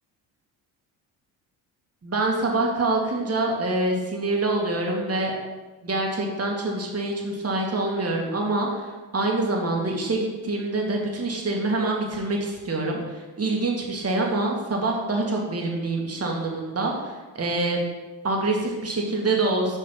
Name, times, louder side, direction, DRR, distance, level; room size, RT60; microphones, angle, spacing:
voice 1, 2.0-5.3 5.8-8.9 9.1-17.8 18.2-19.8, right 2 dB, 30° right, 0 dB, 2.1 m, -25 dB
5.7 x 5.3 x 5.8 m, 1.2 s
hypercardioid pair, 55°, 50 cm